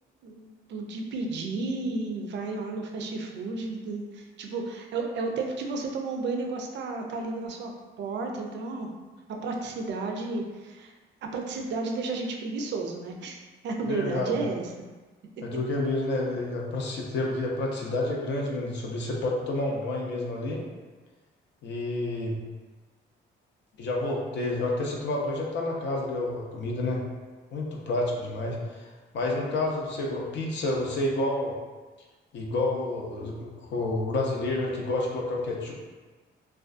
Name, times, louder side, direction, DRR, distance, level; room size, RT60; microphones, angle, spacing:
voice 1, 0.2-7.7 8.0-8.9 9.3-10.9 11.3-13.4 13.6-14.7, right 3 dB, 65° right, 2 dB, 0.4 m, -32 dB
voice 2, 13.9-14.4 15.4-20.6 21.6-22.4 23.8-27.0 27.5-28.9 29.1-31.5 32.3-35.7, left 2 dB, 65° left, -1 dB, 0.5 m, -29 dB
2.4 x 2.3 x 2.4 m, 1.3 s
cardioid pair, 90°, 20 cm